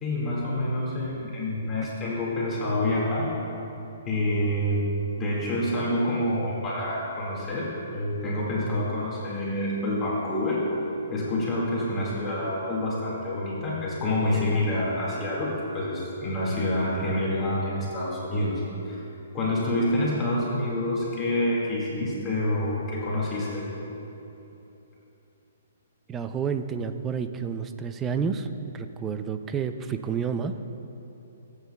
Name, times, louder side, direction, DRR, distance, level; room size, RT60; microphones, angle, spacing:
voice 1, 0.0-3.3 4.0-4.9 5.2-10.6 11.1-19.1 19.3-23.7, left 1 dB, 15° left, -7 dB, 1.8 m, -27 dB
voice 2, 26.1-28.5 28.7-30.6, right 6 dB, 15° right, 9 dB, 0.3 m, -30 dB
20.5 x 8.3 x 2.2 m, 3.0 s
hypercardioid pair, 165°, 0 cm